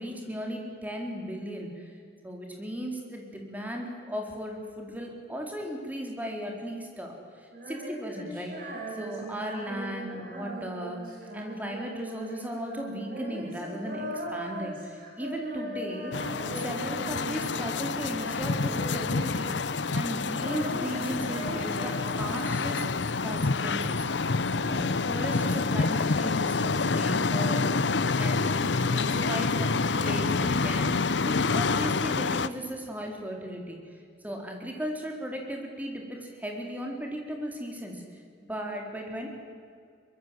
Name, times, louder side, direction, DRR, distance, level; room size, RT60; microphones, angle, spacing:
voice 1, 0.0-1.9 2.2-11.0 11.3-16.2 16.6-22.8 23.2-27.7 28.1-33.8 34.2-38.0 38.5-39.3, equal, 10° right, 1 dB, 4.1 m, -36 dB
Female singing, 7.5-17.8 18.1-19.8 20.0-22.7, right 1 dB, 50° right, 7.6 m, -39 dB
sound 1, 16.1-32.5, left 4 dB, 80° left, 0.8 m, -27 dB
24.0 x 22.0 x 7.9 m, 2.3 s
head